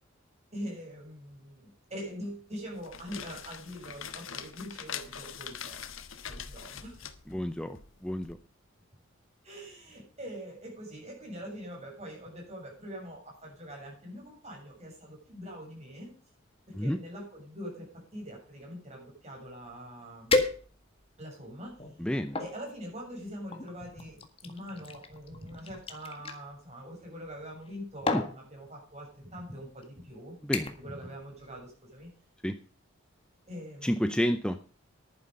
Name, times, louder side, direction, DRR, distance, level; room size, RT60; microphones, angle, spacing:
voice 1, 0.5-5.9 6.2-7.0 9.4-16.1 16.7-20.4 21.2-21.8 22.4-30.4 30.8-32.1 33.5-34.1, equal, 35° right, -1 dB, 7.1 m, -43 dB
sound 1, 2.7-8.3, left 8 dB, 75° left, 1.3 m, -43 dB
voice 2, 7.3-7.8 8.0-8.4 16.7-17.0 22.0-22.4 28.1-28.2 30.4-30.7 32.4-32.6 33.8-34.6, equal, 5° left, 8 dB, 0.6 m, -29 dB
sound 2, 19.6-19.7 20.3-21.1 21.7-22.5 23.5-26.4 27.5-27.7 28.1-28.4 29.2-29.4 29.8-30.1 30.5-30.9 31.3-31.6 32.0-32.1, left 3 dB, 30° left, 1.7 m, -33 dB
11.0 x 9.9 x 5.3 m, 0.41 s
head